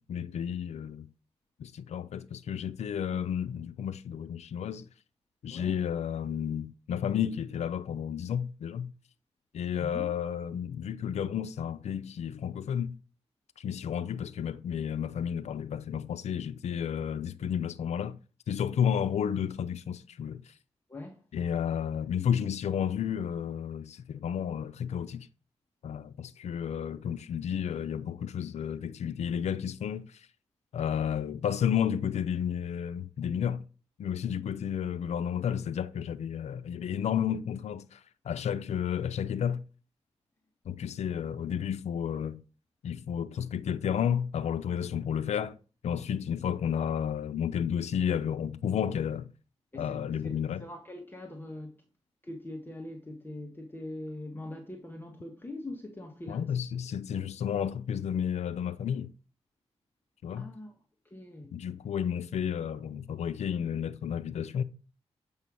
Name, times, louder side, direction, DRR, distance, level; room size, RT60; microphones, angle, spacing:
voice 1, 0.1-1.1 1.6-4.9 5.4-8.9 9.5-13.0 13.6-18.2 18.5-20.5 21.3-25.3 25.8-30.3 30.7-33.6 34.0-39.6 40.7-42.4 42.8-45.6 45.8-49.3 49.8-50.6 56.3-59.1 60.2-60.5 61.5-64.6, left 8 dB, 80° left, 0.5 m, -32 dB
voice 2, 9.8-10.1 20.9-21.2 49.7-51.8 52.2-56.6 60.3-60.8 61.0-61.5, left 1 dB, 20° left, 1.5 m, -42 dB
7.5 x 5.6 x 6.2 m
cardioid pair, 85°, 11 cm